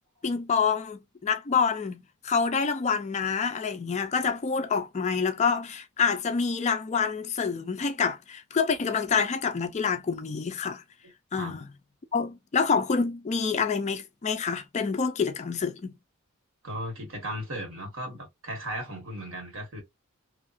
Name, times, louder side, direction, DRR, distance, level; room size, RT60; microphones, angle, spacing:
voice 1, 0.2-10.8 11.3-11.7 12.1-15.9, left 5 dB, 30° left, 0.3 m, -27 dB
voice 2, 16.6-19.8, right 1 dB, 60° right, 1.6 m, -36 dB
2.7 x 2.4 x 2.6 m
head